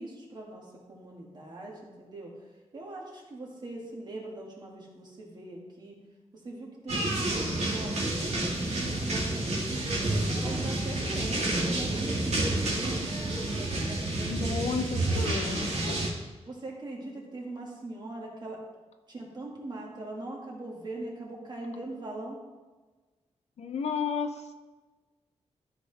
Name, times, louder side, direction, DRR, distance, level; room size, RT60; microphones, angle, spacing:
voice 1, 0.0-2.3 2.7-6.0 6.4-9.4 10.1-14.9 16.4-18.6 19.1-22.4, right 2 dB, 40° right, -2 dB, 2.2 m, -41 dB
sound 1, 6.9-16.1, right 1 dB, 70° right, 2.0 m, -29 dB
voice 2, 14.3-16.0 23.6-24.5, left 5 dB, 70° left, 6 dB, 0.7 m, -33 dB
13.0 x 5.8 x 3.5 m, 1.3 s
wide cardioid pair, 130°, 12 cm